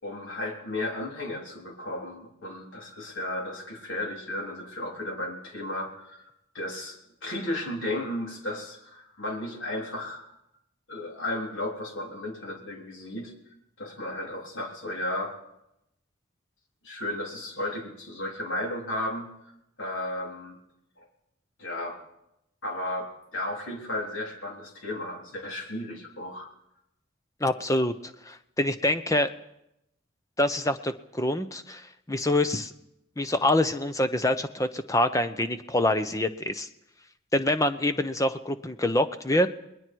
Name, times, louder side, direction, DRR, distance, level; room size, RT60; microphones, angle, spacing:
voice 1, 0.0-10.3 10.9-13.3 13.8-15.4 16.8-19.3 19.8-20.6 21.0-21.1 21.6-22.0 22.6-26.5, left 1 dB, 80° left, 0 dB, 3.9 m, -34 dB
voice 2, 27.4-29.3 30.4-32.7 33.2-36.7 37.3-39.5, left 1 dB, 15° left, 10 dB, 0.9 m, -26 dB
29.5 x 20.5 x 4.7 m, 0.83 s
head